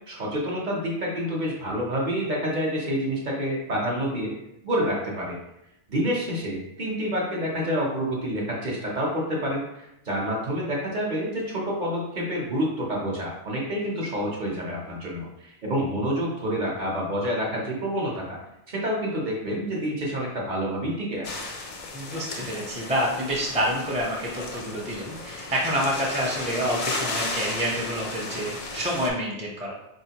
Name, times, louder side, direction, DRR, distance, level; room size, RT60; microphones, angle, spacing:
voice 1, 0.1-4.3 4.6-5.4 5.9-18.4 18.7-21.4, equal, 45° right, -3 dB, 0.9 m, -28 dB
sound 1, 21.2-29.1, left 3 dB, 50° left, 0.4 m, -34 dB
voice 2, 21.9-29.7, equal, 5° right, -4 dB, 0.6 m, -28 dB
4.2 x 3.1 x 2.9 m, 0.86 s
omnidirectional pair, 1.2 m